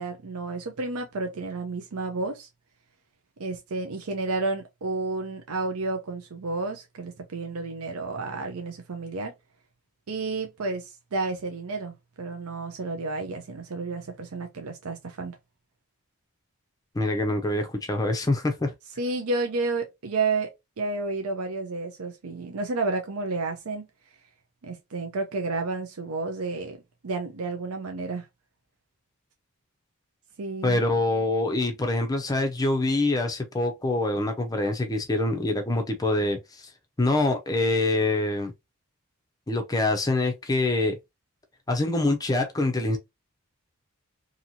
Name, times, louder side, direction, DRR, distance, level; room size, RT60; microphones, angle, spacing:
voice 1, 0.0-2.5 3.4-9.3 10.1-15.4 19.0-20.5 20.8-23.8 24.6-26.8 27.0-28.3 30.4-30.8, right 3 dB, 80° right, 0.6 m, -31 dB
voice 2, 16.9-18.7 30.6-36.7 37.0-38.5 39.5-41.0 41.7-43.0, left 2 dB, 15° left, 0.4 m, -25 dB
2.8 x 2.7 x 2.6 m
head